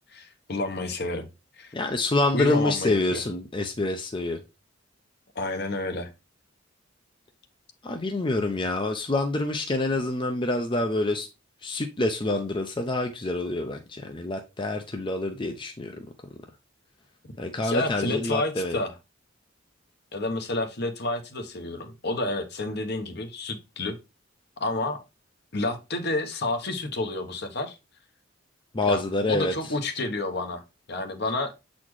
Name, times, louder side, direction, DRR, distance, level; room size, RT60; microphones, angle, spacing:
voice 1, 0.1-1.3 1.6-1.7 2.3-3.2 5.3-6.1 17.6-18.9 20.1-24.0 24.6-25.0 25.5-27.8 28.8-30.6 30.9-31.5, left 2 dB, 55° left, 1.0 m, -30 dB
voice 2, 1.7-4.4 7.8-11.3 11.6-16.0 17.4-18.8 28.7-29.7, left 2 dB, 25° left, 0.6 m, -27 dB
7.2 x 4.2 x 3.1 m
head